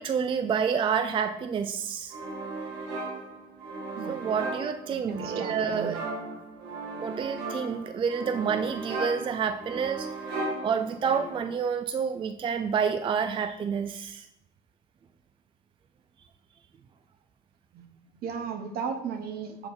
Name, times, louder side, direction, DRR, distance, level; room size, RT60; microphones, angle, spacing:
voice 1, 0.0-2.1 4.1-6.0 7.0-10.1 10.6-14.3, right 6 dB, 30° right, 9 dB, 0.4 m, -28 dB
sound 1, 2.1-11.6, right 2 dB, 90° right, 1.4 m, -36 dB
voice 2, 4.0-4.4 4.9-5.9 17.7-17.8 18.2-19.7, right 6 dB, 65° right, 7 dB, 0.9 m, -35 dB
6.8 x 4.4 x 3.9 m, 0.85 s
cardioid pair, 110°, 17 cm